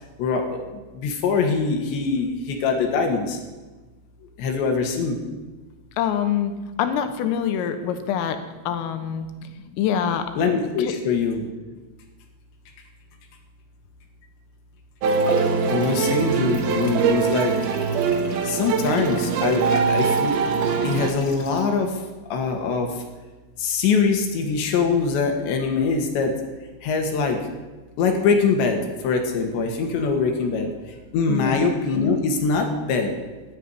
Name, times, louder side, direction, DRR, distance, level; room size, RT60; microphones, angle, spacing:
voice 1, 0.2-0.6 0.9-3.4 4.4-5.2 10.4-11.5 15.7-17.6 18.4-20.4 20.8-22.0 22.3-23.0 23.6-26.3 26.8-27.5 28.0-33.1, left 4 dB, 65° left, 4 dB, 3.6 m, -23 dB
voice 2, 6.0-6.5 6.8-9.3 9.8-10.4 10.8-10.9 31.3-31.7, left 9 dB, 85° left, 8 dB, 3.7 m, -25 dB
sound 1, 15.0-21.6, right 5 dB, 40° left, 1.7 m, -37 dB
sound 2, 15.0-21.1, right 5 dB, 75° right, 2.3 m, -22 dB
14.0 x 10.0 x 9.7 m, 1.2 s
omnidirectional pair, 5.9 m